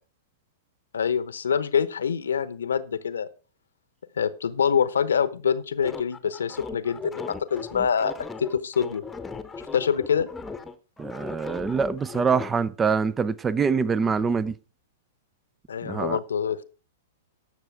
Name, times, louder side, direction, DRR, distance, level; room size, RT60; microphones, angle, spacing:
voice 1, 0.9-3.3 4.2-8.1 8.4-9.0 9.7-10.3 15.7-16.6, left 7 dB, 70° left, 0.8 m, -25 dB
sound 1, 5.8-12.5, left 4 dB, 10° left, 1.0 m, -37 dB
voice 2, 11.0-14.5 15.8-16.2, right 5 dB, 15° right, 0.5 m, -25 dB
18.5 x 6.4 x 3.5 m
figure-of-eight pair, 105°, 0 cm